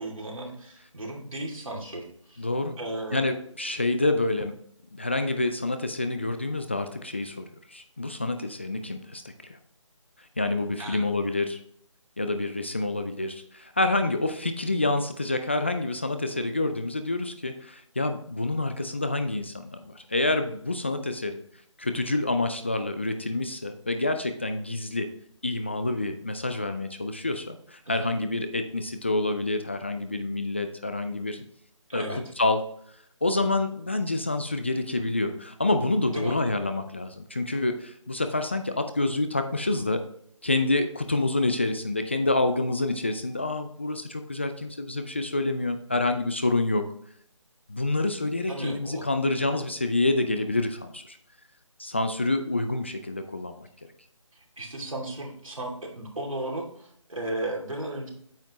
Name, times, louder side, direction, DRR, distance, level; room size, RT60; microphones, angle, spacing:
voice 1, 0.0-2.5 2.8-3.2 10.8-11.0 27.8-28.1 31.9-32.2 36.1-36.4 48.5-49.0 54.6-58.1, right 1 dB, 90° right, -1 dB, 2.6 m, -35 dB
voice 2, 2.4-2.8 3.1-4.5 4.9-9.6 10.4-11.6 12.2-21.4 21.8-25.1 25.4-31.4 31.9-32.6 33.2-40.0 40.4-46.8 47.7-51.2 51.8-53.7, left 2 dB, 20° left, 8 dB, 0.4 m, -27 dB
8.6 x 5.9 x 2.9 m, 0.66 s
figure-of-eight pair, 160°, 17 cm